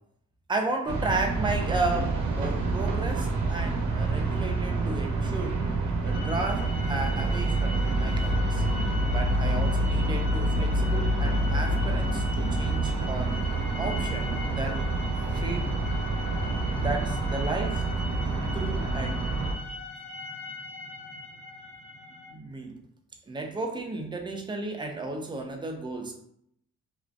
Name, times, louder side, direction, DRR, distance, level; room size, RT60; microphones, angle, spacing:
voice 1, 0.5-5.6 6.0-8.6 9.1-13.4 13.8-14.9 15.3-15.7 16.7-17.8 18.5-19.2 22.3-22.8 23.3-26.2, right 2 dB, 15° right, 3 dB, 0.4 m, -33 dB
sound 1, 0.9-19.5, right 2 dB, 70° right, 0.7 m, -27 dB
sound 2, 6.1-22.3, left 3 dB, 25° left, 1.1 m, -41 dB
2.4 x 2.1 x 2.4 m, 0.70 s
cardioid pair, 90°, 30 cm